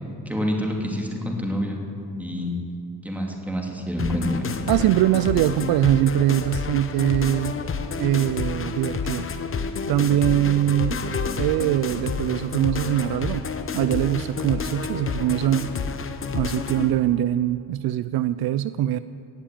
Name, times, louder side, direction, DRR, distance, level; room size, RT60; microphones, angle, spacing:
voice 1, 0.3-1.8 2.2-2.6 3.0-4.5, left 1 dB, 5° right, 0 dB, 2.7 m, -27 dB
sound 1, 4.0-16.9, left 5 dB, 35° left, 1.0 m, -30 dB
voice 2, 4.7-7.6 8.0-9.3 9.9-11.0 11.4-13.4 13.7-15.7 16.3-19.0, right 13 dB, 65° right, 14 dB, 0.5 m, -22 dB
17.5 x 7.2 x 9.1 m, 2.5 s
cardioid pair, 100°, 39 cm